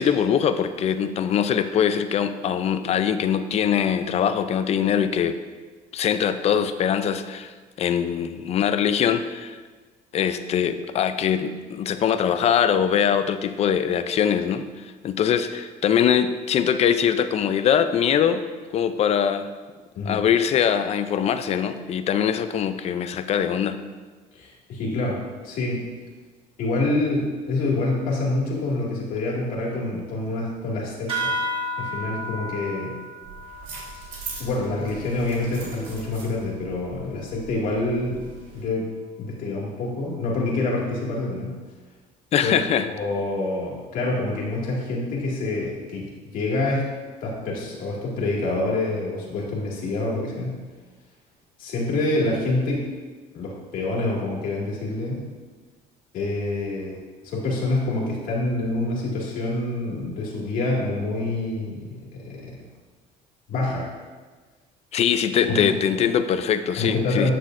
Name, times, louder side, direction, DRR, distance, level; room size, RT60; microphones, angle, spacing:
voice 1, 0.0-5.4 5.9-7.5 7.8-9.6 10.1-18.5 18.7-19.5 20.1-23.8 42.3-42.9 64.9-67.3, left 8 dB, 45° left, 11 dB, 0.4 m, -22 dB
voice 2, 24.3-25.9 26.6-31.3 31.8-33.0 34.4-38.2 38.5-38.9 39.2-41.5 42.4-42.5 42.9-50.6 51.6-52.9 53.3-55.3 56.1-62.6 63.5-63.9 65.4-65.7 66.8-67.3, left 2 dB, 65° left, -3 dB, 2.2 m, -27 dB
sound 1, 31.1-36.0, equal, 35° right, 2.0 m, -33 dB
sound 2, 33.2-38.6, right 4 dB, 65° right, 2.3 m, -41 dB
10.0 x 6.1 x 2.6 m, 1.4 s
cardioid pair, 120°, 15 cm